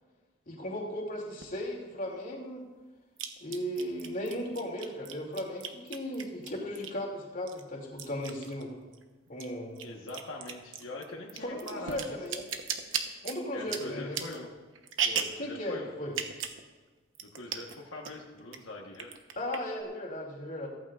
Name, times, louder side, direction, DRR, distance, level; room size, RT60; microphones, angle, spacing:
voice 1, 0.5-2.7 3.4-8.8 9.3-9.8 11.4-12.5 13.2-14.2 15.4-16.2 19.4-20.7, left 1 dB, 45° left, -2 dB, 2.7 m, -36 dB
sound 1, 1.4-1.5 3.2-7.1 7.5-9.0 9.3-15.5 16.1-16.6 16.9-17.0 17.2-17.8 18.1-18.6 18.9-19.8, right 7 dB, 80° right, 1.0 m, -36 dB
voice 2, 9.8-12.2 13.5-14.5 15.0-15.9 17.2-19.1, left 2 dB, 80° left, -1 dB, 1.3 m, -42 dB
15.0 x 14.5 x 2.5 m, 1.3 s
head